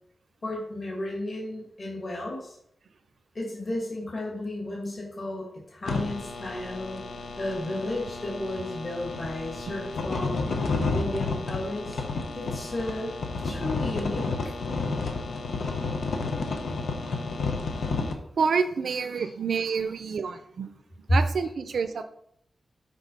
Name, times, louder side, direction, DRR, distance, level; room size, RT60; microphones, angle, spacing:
voice 1, 0.4-2.6 3.3-7.0 7.4-10.5 10.9-12.0 12.3-13.1 13.4-14.5 19.2-19.3, left 1 dB, 40° left, -3 dB, 2.0 m, -34 dB
sound 1, 5.8-18.1, left 3 dB, 80° left, 0.9 m, -31 dB
voice 2, 18.4-20.7 21.1-22.0, right 5 dB, 75° right, 9 dB, 0.6 m, -28 dB
6.3 x 4.7 x 5.4 m, 0.72 s
wide cardioid pair, 165°, 0 cm